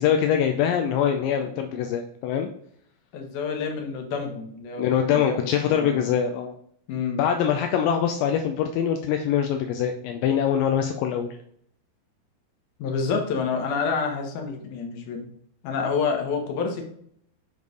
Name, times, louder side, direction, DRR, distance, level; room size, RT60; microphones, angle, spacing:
voice 1, 0.0-2.5 4.8-6.5 7.2-11.3, left 8 dB, 85° left, 5 dB, 2.3 m, -23 dB
voice 2, 3.1-6.0 6.9-7.2 12.8-15.3 15.6-16.8, left 5 dB, 70° left, 3 dB, 2.4 m, -28 dB
7.1 x 3.2 x 5.2 m, 0.67 s
omnidirectional pair, 4.1 m